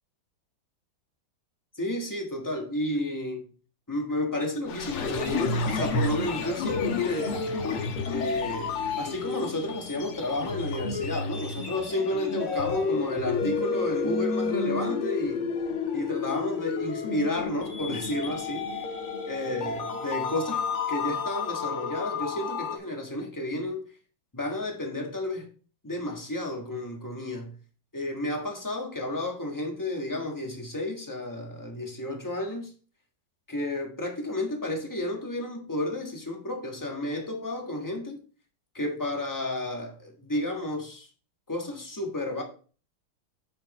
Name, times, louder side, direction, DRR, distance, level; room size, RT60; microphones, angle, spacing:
voice 1, 1.7-3.5 3.9-7.4 8.1-15.4 15.9-18.8 19.3-23.8 24.3-25.5 25.8-27.5 27.9-32.7 33.5-38.2 38.7-41.1 41.5-42.4, left 1 dB, 10° left, 1.1 m, -32 dB
sound 1, 4.7-22.8, left 4 dB, 90° left, 2.1 m, -30 dB
8.3 x 6.5 x 3.1 m
omnidirectional pair, 2.3 m